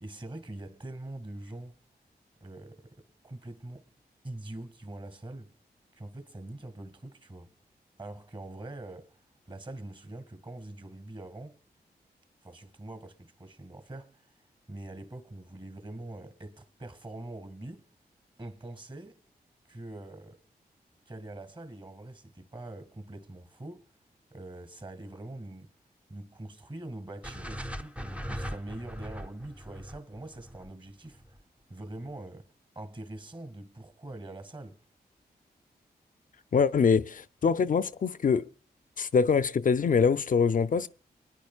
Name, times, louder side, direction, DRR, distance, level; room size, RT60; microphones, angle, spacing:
voice 1, 0.0-1.7 2.4-3.9 4.2-5.5 5.9-7.5 8.0-9.1 9.5-11.6 12.4-14.2 14.7-17.8 18.4-19.2 19.7-20.4 21.1-23.9 24.3-25.7 26.1-31.2 31.7-32.5 32.8-34.8, right 1 dB, 30° right, 2.0 m, -43 dB
sound 1, 27.2-31.4, equal, 5° right, 0.6 m, -40 dB
voice 2, 36.5-38.5 39.0-40.9, left 5 dB, 55° left, 0.5 m, -24 dB
24.0 x 10.5 x 2.4 m
cardioid pair, 50°, 17 cm